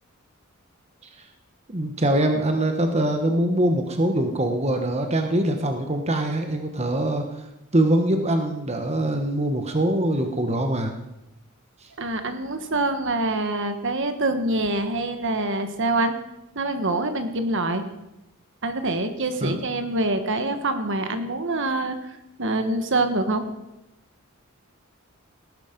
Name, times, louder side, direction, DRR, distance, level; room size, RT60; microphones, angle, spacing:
voice 1, 1.7-7.4 7.7-10.9 19.4-19.6, right 1 dB, 30° right, 5 dB, 1.2 m, -23 dB
voice 2, 12.0-16.1 16.5-17.8 18.6-23.4, right 2 dB, 55° right, 8 dB, 1.5 m, -25 dB
19.0 x 11.0 x 5.3 m, 0.92 s
head